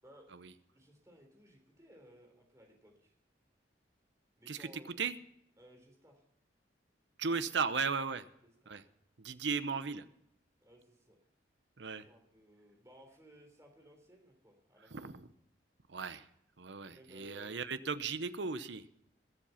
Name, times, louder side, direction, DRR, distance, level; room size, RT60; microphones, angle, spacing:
voice 1, 0.7-3.1 4.4-4.9 5.6-6.2 8.6-8.9 10.6-11.2 11.8-15.1 16.8-17.6, equal, 15° right, 2 dB, 3.5 m, -59 dB
voice 2, 4.5-5.1 7.2-8.3 8.7-8.8 9.2-10.0 11.8-12.1 14.9-15.3 15.9-16.3 16.6-18.9, right 5 dB, 75° right, 13 dB, 0.8 m, -36 dB
21.0 x 7.7 x 5.7 m, 0.75 s
head